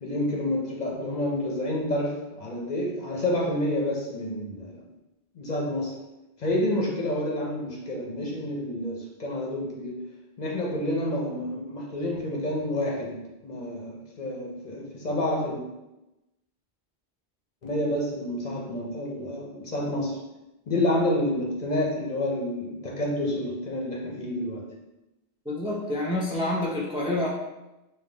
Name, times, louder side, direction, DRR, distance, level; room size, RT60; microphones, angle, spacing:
voice 1, 0.0-4.8 5.3-6.0 6.4-10.0 10.4-15.6 17.6-20.2 20.7-24.7, left 1 dB, 50° left, -2 dB, 0.6 m, -29 dB
voice 2, 25.5-27.3, left 1 dB, 10° right, -3 dB, 0.3 m, -27 dB
3.6 x 2.6 x 3.8 m, 0.98 s
omnidirectional pair, 1.1 m